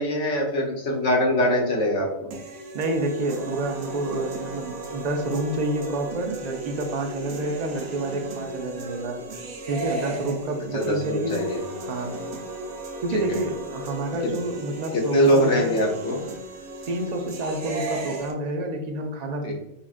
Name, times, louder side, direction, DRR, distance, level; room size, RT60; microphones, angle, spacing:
voice 1, 0.0-2.3 10.7-11.6 14.9-16.2 19.4-19.5, equal, 80° left, -1 dB, 1.3 m, -22 dB
sound 1, 2.3-18.3, right 2 dB, 80° right, 1.0 m, -36 dB
voice 2, 2.7-9.4 9.7-11.5 11.9-12.1 13.0-15.8 16.9-19.5, right 2 dB, 50° right, 3 dB, 0.5 m, -29 dB
5.6 x 2.4 x 2.5 m, 0.92 s
omnidirectional pair, 1.2 m